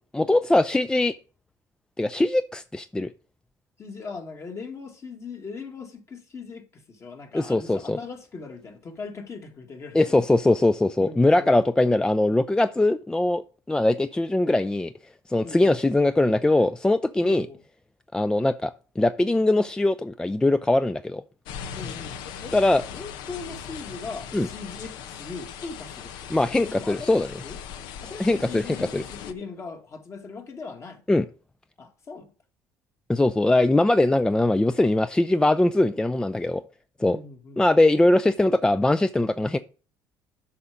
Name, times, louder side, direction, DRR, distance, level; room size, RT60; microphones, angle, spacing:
voice 1, 0.1-1.2 2.0-3.1 7.3-8.0 9.9-14.9 15.3-17.5 18.1-21.2 22.5-22.8 24.3-24.5 26.3-27.3 28.2-29.0 31.1-31.3 33.1-36.6 37.0-37.2 37.6-39.6, left 2 dB, 10° left, 0.4 m, -21 dB
voice 2, 3.8-10.4 11.0-11.7 15.4-15.8 17.2-17.6 21.7-22.6 22.9-27.2 27.4-27.6 28.0-31.0 31.8-32.3 37.0-37.6, left 4 dB, 40° left, 2.0 m, -40 dB
sound 1, 21.5-29.3, left 8 dB, 75° left, 0.9 m, -39 dB
8.4 x 5.8 x 5.1 m
supercardioid pair, 85°, 7 cm